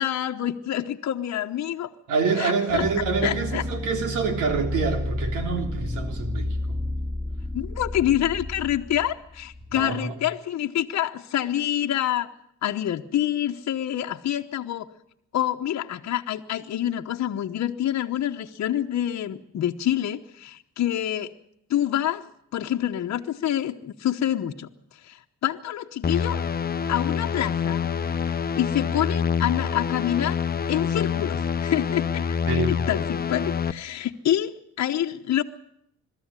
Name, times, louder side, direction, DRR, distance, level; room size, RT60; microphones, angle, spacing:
voice 1, 0.0-1.9 2.4-2.9 3.2-3.6 7.5-12.3 12.6-14.9 15.3-21.3 21.7-22.3 22.5-26.4 26.9-27.8 28.5-30.4 30.7-35.4, left 11 dB, 60° left, 4 dB, 1.1 m, -27 dB
voice 2, 2.1-6.8 9.7-10.1 32.5-32.8, right 5 dB, 90° right, 6 dB, 3.4 m, -26 dB
sound 1, 2.7-9.9, left 1 dB, 5° left, 2.2 m, -31 dB
sound 2, 26.0-33.7, left 7 dB, 30° left, 0.9 m, -26 dB
22.0 x 13.5 x 9.7 m, 0.72 s
cardioid pair, 90°, 30 cm